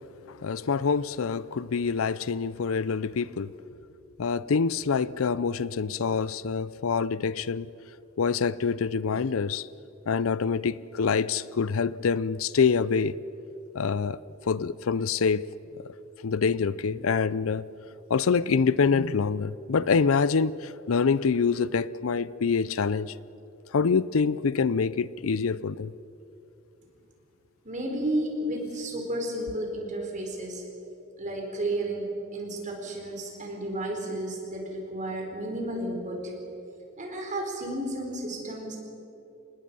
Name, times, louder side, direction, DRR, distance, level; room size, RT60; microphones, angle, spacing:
voice 1, 0.3-3.5 4.2-7.7 8.2-9.7 10.1-13.2 13.7-14.2 14.5-15.4 16.2-17.7 18.1-23.1 23.7-25.9, left 5 dB, 75° left, 0.5 m, -26 dB
voice 2, 27.6-30.6 31.2-32.1 32.3-36.3 37.0-38.8, right 1 dB, 35° right, 4.4 m, -32 dB
26.5 x 20.0 x 5.5 m
head